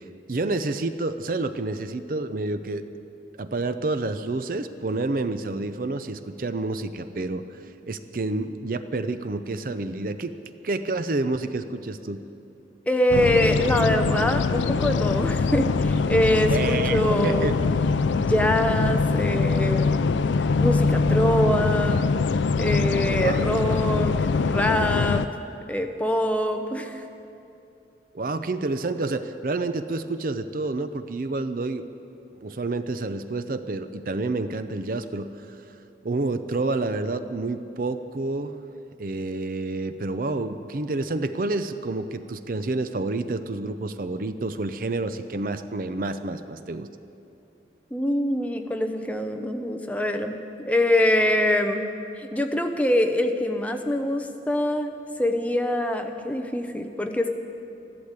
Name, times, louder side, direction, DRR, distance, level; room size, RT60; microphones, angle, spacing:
voice 1, 0.0-2.8 3.4-7.6 7.9-10.3 10.6-12.2 16.5-17.6 23.1-23.4 28.1-31.8 32.4-35.3 36.0-38.6 39.0-46.9, right 2 dB, 50° right, 10 dB, 0.5 m, -29 dB
voice 2, 12.9-17.6 18.1-20.1 20.4-22.1 22.6-25.2 25.7-27.0 47.9-50.3 50.6-51.9 52.2-54.9 55.2-57.3, left 1 dB, 10° left, 5 dB, 0.7 m, -24 dB
sound 1, 13.1-25.3, left 4 dB, 85° left, 0.4 m, -23 dB
14.5 x 12.0 x 8.1 m, 2.8 s
head